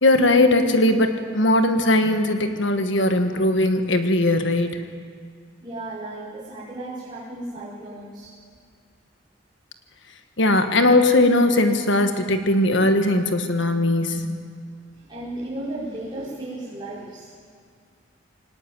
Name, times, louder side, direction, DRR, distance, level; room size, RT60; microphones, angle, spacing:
voice 1, 0.0-4.8 10.4-14.4, left 1 dB, 60° left, 7 dB, 1.8 m, -19 dB
voice 2, 5.6-8.3 14.9-17.4, right 1 dB, 20° right, -11 dB, 4.9 m, -34 dB
22.5 x 19.0 x 9.4 m, 2.1 s
head